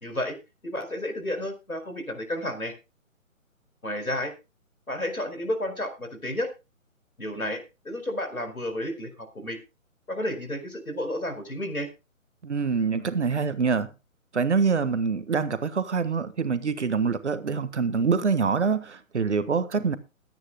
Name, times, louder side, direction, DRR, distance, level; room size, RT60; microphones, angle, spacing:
voice 1, 0.0-0.4 0.6-2.7 3.8-4.3 4.9-6.5 7.2-9.6 10.1-11.9, left 1 dB, 85° left, 4.3 m, -31 dB
voice 2, 12.4-13.9 14.3-20.0, right 5 dB, 55° right, 1.5 m, -25 dB
21.5 x 9.7 x 2.2 m
figure-of-eight pair, 140°, 41 cm